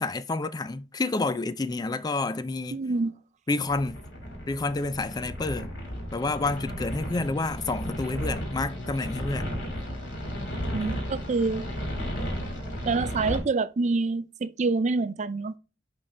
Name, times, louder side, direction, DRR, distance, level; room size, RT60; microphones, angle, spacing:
voice 1, 0.0-2.8 3.5-4.0 4.5-5.7 6.1-9.5, left 3 dB, 20° left, 0.3 m, -29 dB
voice 2, 2.7-3.1 10.7-11.6 12.9-15.5, right 3 dB, 40° right, 0.4 m, -26 dB
sound 1, 3.7-13.4, equal, 70° left, 2.9 m, -34 dB
10.5 x 3.6 x 4.2 m
head